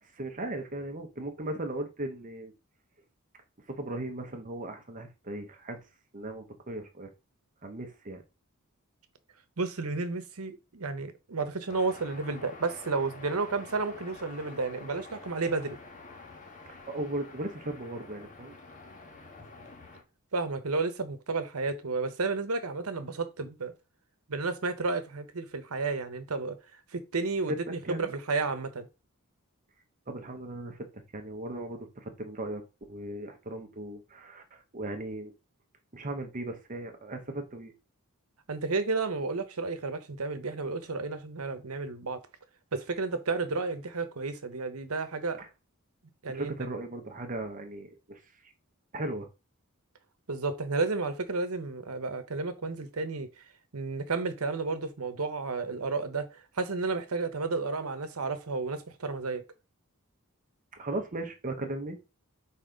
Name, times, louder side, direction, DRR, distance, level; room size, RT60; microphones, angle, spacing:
voice 1, 0.0-2.5 3.7-5.8 6.1-7.1 7.6-8.2 16.9-18.5 27.5-27.6 27.8-28.1 30.1-32.6 32.9-35.3 35.9-37.7 45.4-45.5 46.3-48.5 48.9-49.3 60.7-62.0, right 1 dB, 35° right, 0.9 m, -37 dB
voice 2, 9.6-15.8 20.3-23.7 24.3-26.6 26.9-28.9 38.5-42.2 42.7-45.4 46.2-46.5 50.3-53.3 53.7-56.3 56.6-59.4, right 3 dB, 75° right, 1.0 m, -32 dB
sound 1, 11.7-20.0, left 3 dB, 35° left, 1.3 m, -48 dB
4.4 x 4.2 x 5.1 m
head